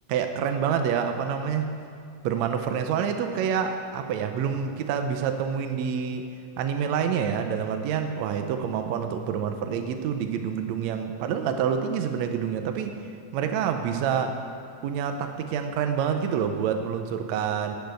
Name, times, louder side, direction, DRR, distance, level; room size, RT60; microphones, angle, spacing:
voice 1, 0.1-1.6 2.2-6.2 6.6-12.9 13.3-14.3 14.8-17.8, right 7 dB, 90° right, 6 dB, 1.5 m, -27 dB
12.0 x 7.0 x 7.8 m, 2.3 s
omnidirectional pair, 4.0 m